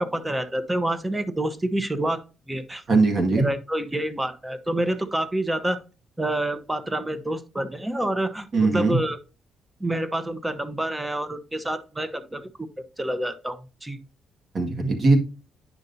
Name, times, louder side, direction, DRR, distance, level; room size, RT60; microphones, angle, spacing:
voice 1, 0.0-2.2 2.5-2.8 3.4-5.8 6.2-8.5 8.7-9.2 9.8-12.5 13.0-14.0, right 1 dB, 10° right, 0.9 m, -27 dB
voice 2, 2.9-3.5 8.5-9.0 14.5-15.2, right 3 dB, 50° right, 1.9 m, -20 dB
9.6 x 5.5 x 2.7 m
cardioid pair, 90°, 0 cm